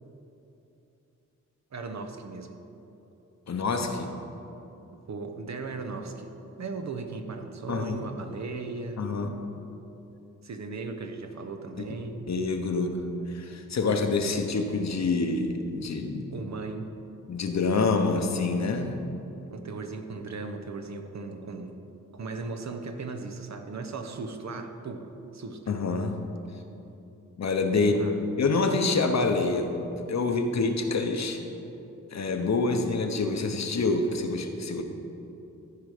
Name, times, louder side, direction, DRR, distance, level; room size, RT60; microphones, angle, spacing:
voice 1, 1.7-2.6 4.9-6.3 6.6-9.1 10.4-12.3 16.3-16.9 19.5-21.8 22.1-25.7 27.7-28.2, right 3 dB, 60° right, 6 dB, 0.8 m, -37 dB
voice 2, 3.5-4.1 7.7-8.0 9.0-9.3 12.3-13.0 13.3-16.2 17.3-18.9 25.7-26.2 27.4-27.9 28.4-31.4 32.1-34.8, left 3 dB, 55° left, 5 dB, 0.9 m, -26 dB
14.0 x 4.8 x 5.0 m, 2.9 s
wide cardioid pair, 85°, 32 cm